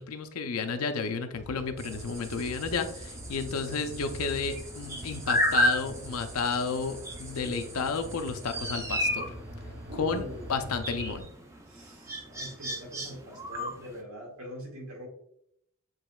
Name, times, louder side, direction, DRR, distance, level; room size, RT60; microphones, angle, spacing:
voice 1, 0.0-9.3 10.0-10.2 10.5-11.3, left 5 dB, 80° left, 8 dB, 0.5 m, -32 dB
sound 1, 1.3-11.2, equal, 50° right, 0.8 m, -43 dB
sound 2, 1.8-14.0, equal, 15° right, 0.4 m, -34 dB
voice 2, 9.9-10.6 11.7-15.1, equal, 80° right, -2 dB, 1.7 m, -43 dB
7.4 x 3.0 x 2.3 m, 0.72 s
head